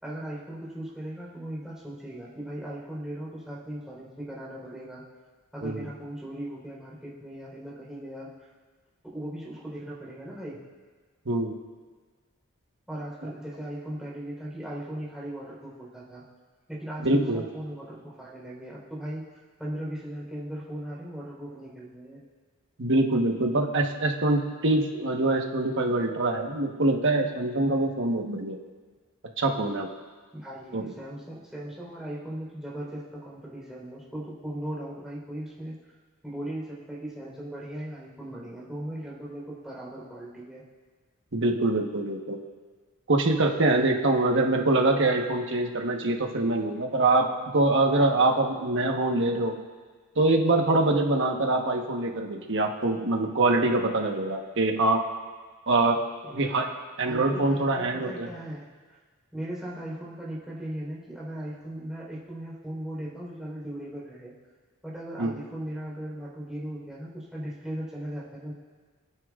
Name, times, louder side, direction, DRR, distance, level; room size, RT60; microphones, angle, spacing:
voice 1, 0.0-5.0 5.5-8.3 9.1-10.6 12.9-16.2 16.7-19.3 19.6-22.2 30.3-35.8 36.2-40.6 56.2-56.7 57.0-59.0 59.3-64.3 64.8-68.5, right 1 dB, 5° right, -6 dB, 3.9 m, -38 dB
voice 2, 17.0-17.4 22.8-28.6 29.4-29.9 30.7-30.9 41.3-42.4 43.1-49.5 50.2-55.0 55.7-56.0 56.3-56.7 57.0-58.3 65.2-65.3, right 2 dB, 60° right, 3 dB, 1.2 m, -24 dB
27.0 x 9.8 x 2.5 m, 1.5 s
head